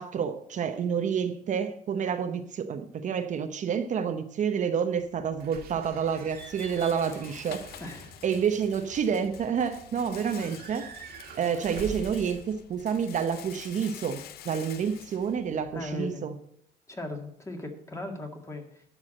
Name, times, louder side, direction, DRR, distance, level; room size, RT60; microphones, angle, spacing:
voice 1, 0.0-7.7 8.2-10.9 11.4-16.3, right 7 dB, 45° right, 8 dB, 0.8 m, -29 dB
Rattle, 5.0-16.0, left 11 dB, 65° left, 0.7 m, -49 dB
Slam / Squeak / Alarm, 5.4-13.4, right 5 dB, 65° right, 1.8 m, -46 dB
voice 2, 7.8-8.2 15.7-16.3 16.9-18.8, left 2 dB, 15° left, 3 dB, 2.0 m, -38 dB
11.5 x 4.8 x 7.6 m, 0.70 s
cardioid pair, 110°, 17 cm